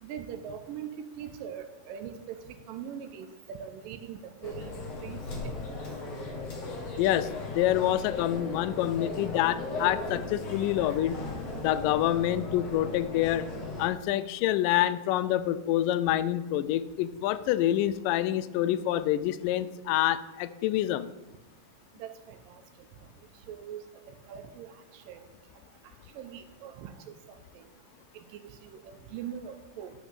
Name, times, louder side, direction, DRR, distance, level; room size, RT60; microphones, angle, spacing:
voice 1, 0.0-5.8 22.0-22.6 23.5-23.8 24.1-25.2 26.1-27.6 28.1-29.9, right 8 dB, 85° right, 9 dB, 2.3 m, -42 dB
sound 1, 4.4-13.9, left 2 dB, 50° left, 2.7 m, -37 dB
voice 2, 7.0-11.2 11.6-13.5 13.8-21.1, left 13 dB, 80° left, 15 dB, 2.1 m, -27 dB
11.5 x 6.1 x 6.9 m, 1.1 s
omnidirectional pair, 4.0 m